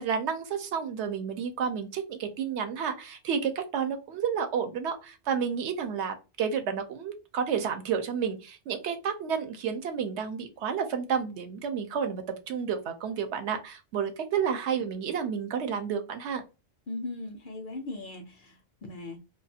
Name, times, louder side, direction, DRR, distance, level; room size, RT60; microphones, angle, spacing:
voice 1, 0.0-16.4, right 7 dB, 75° right, 0.9 m, -31 dB
voice 2, 16.9-19.2, left 2 dB, 60° left, 0.6 m, -39 dB
2.4 x 2.3 x 2.6 m
omnidirectional pair, 1.2 m